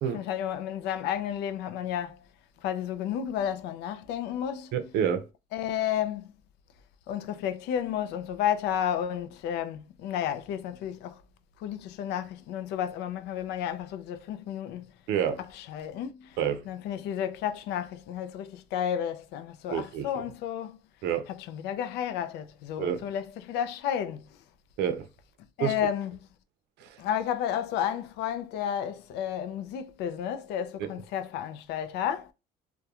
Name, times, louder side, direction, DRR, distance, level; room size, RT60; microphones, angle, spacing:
voice 1, 0.1-2.2 2.6-4.7 5.5-6.3 7.1-11.2 11.6-14.9 15.6-16.4 16.7-20.8 21.3-24.3 25.6-26.2 27.0-32.3, left 9 dB, 85° left, 0.4 m, -32 dB
voice 2, 4.7-5.3 15.1-15.4 16.4-16.7 19.7-20.1 21.0-21.3 22.8-23.1 24.8-25.1 25.6-25.8 26.8-27.0 30.8-30.9, right 8 dB, 80° right, 0.5 m, -28 dB
2.3 x 2.2 x 2.8 m
cardioid pair, 110°, 17 cm